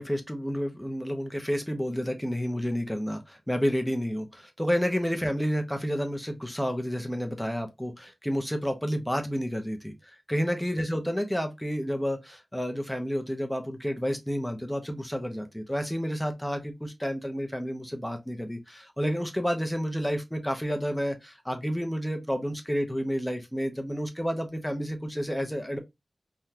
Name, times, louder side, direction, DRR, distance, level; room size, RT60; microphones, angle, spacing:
voice 1, 0.0-25.8, equal, 5° left, 0.7 m, -30 dB
3.7 x 2.3 x 2.8 m
wide cardioid pair, 90°, 0 cm